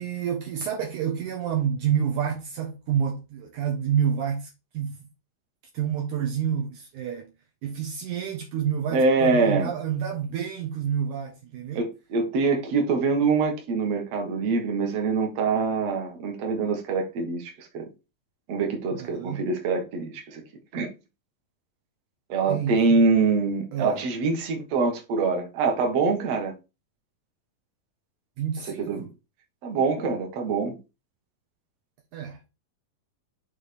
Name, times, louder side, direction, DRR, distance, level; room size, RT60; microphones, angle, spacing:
voice 1, 0.0-4.9 5.7-7.3 7.6-11.8 18.9-19.5 22.5-23.0 23.7-24.0 28.4-29.1 32.1-32.4, right 8 dB, 70° right, 2.4 m, -28 dB
voice 2, 8.9-9.7 11.8-17.9 18.5-20.4 20.7-20.9 22.3-26.5 28.6-29.1 29.6-30.8, right 4 dB, 55° right, 2.3 m, -24 dB
6.6 x 3.6 x 5.1 m
omnidirectional pair, 3.8 m